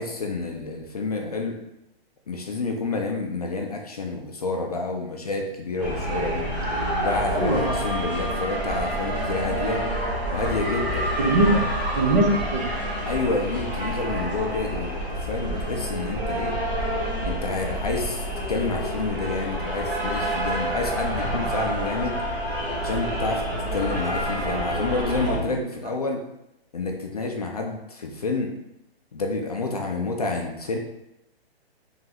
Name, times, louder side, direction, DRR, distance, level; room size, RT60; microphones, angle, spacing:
voice 1, 0.0-1.6 2.3-6.5 7.0-9.9 10.3-11.1 13.1-16.6 17.2-22.2 22.8-23.4 23.7-26.2 26.7-28.5 29.1-30.8, left 3 dB, 40° left, 1 dB, 0.4 m, -29 dB
sound 1, 5.8-25.4, right 1 dB, 5° right, 0.6 m, -28 dB
voice 2, 7.3-7.8 11.2-12.7 25.3-25.6, right 1 dB, 45° right, 0 dB, 0.8 m, -22 dB
3.8 x 3.1 x 2.8 m, 0.86 s
hypercardioid pair, 165°, 31 cm